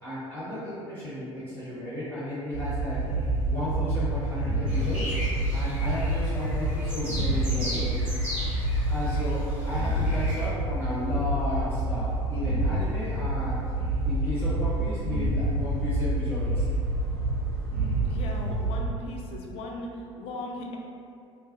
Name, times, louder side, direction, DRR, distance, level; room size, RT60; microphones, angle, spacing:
voice 1, 0.0-3.0 3.5-5.2 5.5-7.9 8.9-13.6 14.0-16.7, left 1 dB, 15° left, -11 dB, 0.7 m, -33 dB
sound 1, 2.5-18.8, right 1 dB, 70° right, 0.6 m, -28 dB
sound 2, 4.7-10.5, equal, 10° right, 1.0 m, -38 dB
voice 2, 18.0-20.8, left 2 dB, 40° left, 0 dB, 0.4 m, -38 dB
2.3 x 2.1 x 2.5 m, 2.4 s
figure-of-eight pair, 65°, 15 cm